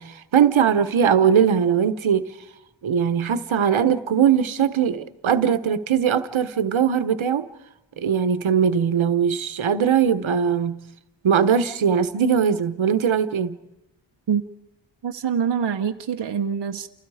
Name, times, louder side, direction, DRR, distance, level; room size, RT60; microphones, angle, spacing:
voice 1, 0.0-2.3 2.8-7.5 8.0-10.8 11.2-13.6, right 7 dB, 80° right, 1.2 m, -20 dB
voice 2, 15.0-16.9, right 7 dB, 60° right, 1.0 m, -25 dB
29.5 x 29.0 x 4.9 m
wide cardioid pair, 115°, 47 cm